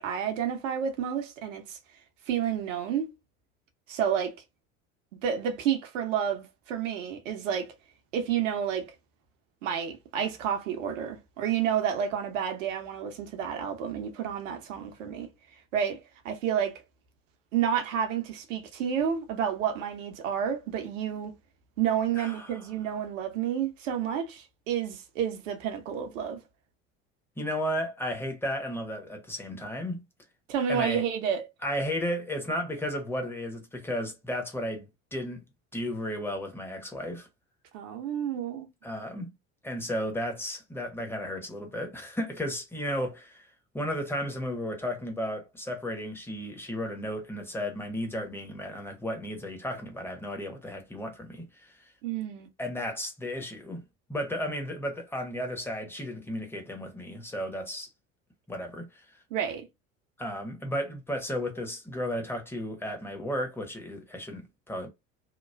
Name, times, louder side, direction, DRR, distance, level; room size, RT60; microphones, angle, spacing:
voice 1, 0.0-1.8 2.3-3.1 3.9-4.3 5.2-7.7 8.1-8.9 9.6-15.3 15.7-16.0 16.2-16.8 17.5-21.4 21.8-26.4 30.5-31.4 37.7-38.7 52.0-52.5 59.3-59.7, right 8 dB, 70° right, 0.9 m, -30 dB
voice 2, 22.2-22.6 27.4-30.0 30.7-31.0 31.6-34.9 35.1-35.4 35.7-37.3 38.8-39.3 39.6-43.5 43.7-51.9 52.6-57.9 58.5-59.0 60.2-64.9, equal, 5° left, 1.0 m, -34 dB
2.9 x 2.3 x 2.3 m
figure-of-eight pair, 70°, 40 cm